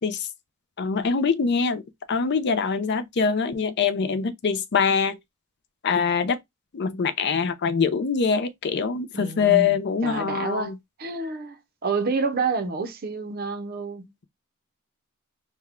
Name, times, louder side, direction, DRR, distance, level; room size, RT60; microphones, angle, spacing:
voice 1, 0.8-5.2 5.8-6.4 6.7-10.8, left 5 dB, 50° left, 0.5 m, -24 dB
voice 2, 9.1-9.8 10.0-10.7 11.0-14.1, right 4 dB, 45° right, 0.6 m, -28 dB
3.4 x 2.2 x 3.5 m
head